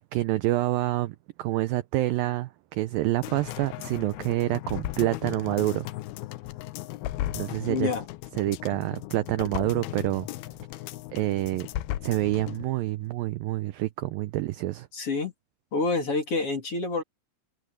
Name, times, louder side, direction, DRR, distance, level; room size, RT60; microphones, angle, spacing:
voice 1, 0.1-5.9 7.3-7.9 8.4-10.3 11.1-11.7 12.0-14.9, right 16 dB, 80° right, 2.1 m, -27 dB
sound 1, 3.2-12.7 13.0-13.1, left 15 dB, 75° left, 2.6 m, -36 dB
voice 2, 7.7-8.1 14.9-15.3 15.7-17.0, left 3 dB, 35° left, 3.5 m, -27 dB
omnidirectional pair, 4.8 m